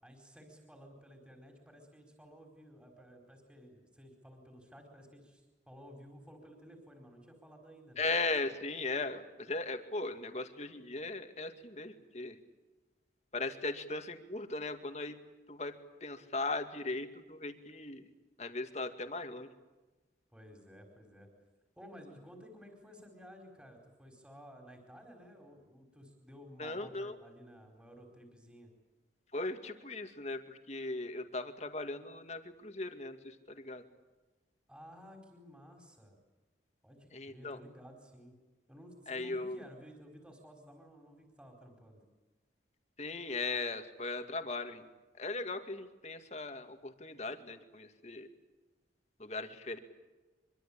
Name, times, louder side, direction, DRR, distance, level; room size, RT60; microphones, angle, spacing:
voice 1, 0.0-8.1 20.3-21.3 21.8-28.7 34.7-36.2 36.8-38.4 38.7-42.0, equal, 5° right, 3 dB, 4.7 m, -54 dB
voice 2, 8.0-12.4 13.3-15.2 15.5-15.7 16.0-18.0 18.4-19.5 26.6-27.1 29.3-33.8 37.1-37.6 39.1-39.6 43.0-44.8 45.2-48.3 49.2-49.8, left 3 dB, 35° left, 7 dB, 2.2 m, -38 dB
25.5 x 24.0 x 8.8 m, 1.2 s
head